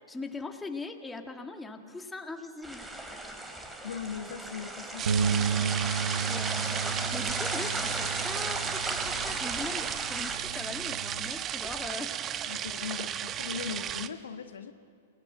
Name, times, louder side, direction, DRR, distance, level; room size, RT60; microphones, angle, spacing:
voice 1, 0.1-2.8 6.3-12.1, left 3 dB, 10° left, 4 dB, 2.0 m, -40 dB
sound 1, 2.6-10.4, right 1 dB, 10° right, 3.6 m, -36 dB
voice 2, 3.8-5.9 12.5-14.7, left 6 dB, 75° left, 8 dB, 1.4 m, -39 dB
sound 2, 5.0-14.1, right 10 dB, 30° right, 1.0 m, -35 dB
Bass guitar, 5.1-11.3, right 6 dB, 75° right, 0.7 m, -33 dB
28.0 x 19.0 x 7.6 m, 2.4 s
hypercardioid pair, 110°, 0 cm